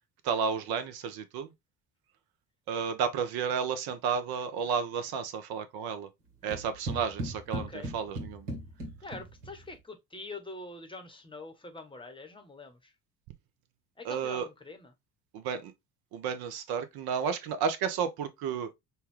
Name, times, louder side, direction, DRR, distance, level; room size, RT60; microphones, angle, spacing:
voice 1, 0.2-1.5 2.7-6.1 6.4-8.5 14.0-14.5 15.3-15.7 16.1-18.7, right 6 dB, 50° right, 0.9 m, -32 dB
sound 1, 6.5-9.7, right 1 dB, 75° right, 1.7 m, -38 dB
voice 2, 7.5-7.9 9.0-12.9 14.0-14.9, left 3 dB, 10° left, 1.0 m, -45 dB
5.5 x 2.3 x 3.2 m
figure-of-eight pair, 60°, 47 cm